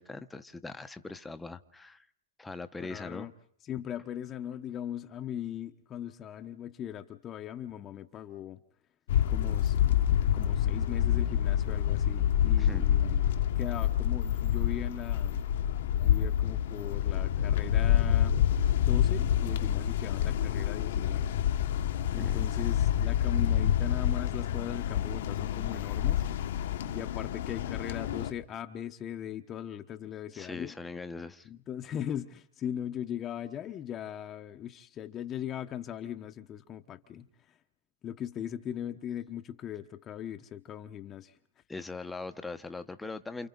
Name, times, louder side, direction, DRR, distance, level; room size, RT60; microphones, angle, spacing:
voice 1, 0.0-2.0 2.4-3.3 12.6-12.9 22.1-22.5 30.3-31.5 41.7-43.5, left 3 dB, 10° left, 9 dB, 1.1 m, -41 dB
voice 2, 2.8-3.3 3.6-8.6 9.3-13.3 13.5-15.4 16.0-18.4 18.9-21.3 22.0-26.3 26.9-30.7 31.4-37.6 38.0-41.4, left 10 dB, 30° left, 5 dB, 1.1 m, -39 dB
sound 1, 9.1-28.3, left 10 dB, 70° left, 1.4 m, -27 dB
29.5 x 28.5 x 4.0 m, 0.63 s
hypercardioid pair, 125°, 0 cm